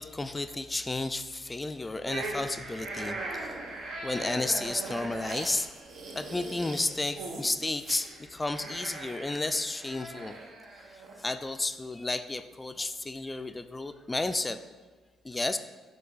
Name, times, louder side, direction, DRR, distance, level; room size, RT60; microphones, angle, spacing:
voice 1, 0.0-3.7 4.0-5.7 6.1-10.4 10.9-14.6 15.2-15.6, left 2 dB, 20° left, 9 dB, 0.3 m, -32 dB
sound 1, 2.0-11.2, right 2 dB, 75° right, 1.0 m, -40 dB
8.4 x 3.4 x 3.9 m, 1.4 s
cardioid pair, 90°, 0 cm